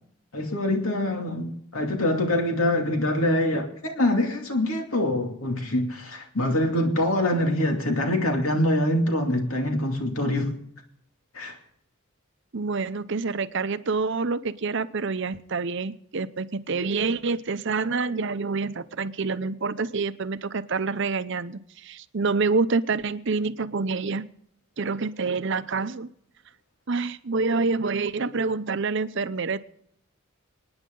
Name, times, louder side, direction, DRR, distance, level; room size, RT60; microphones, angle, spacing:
voice 1, 0.3-10.6 11.3-11.6, left 1 dB, 85° left, 2.6 m, -24 dB
voice 2, 12.5-24.3 24.8-26.1 26.9-29.6, right 4 dB, 60° right, 0.7 m, -27 dB
27.0 x 9.7 x 3.8 m
head